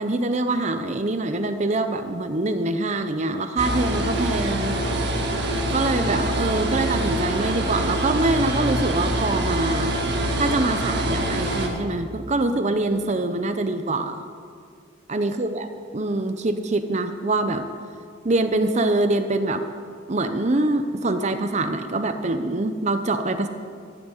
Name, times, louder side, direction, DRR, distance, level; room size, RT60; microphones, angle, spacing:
voice 1, 0.0-5.0 5.7-9.9 10.4-14.2 15.1-15.7 15.9-17.7 18.2-19.7 20.1-23.5, right 2 dB, 35° right, 8 dB, 0.6 m, -24 dB
sound 1, 3.6-11.7, right 1 dB, 55° right, 1.8 m, -25 dB
14.0 x 7.3 x 9.7 m, 2.2 s
head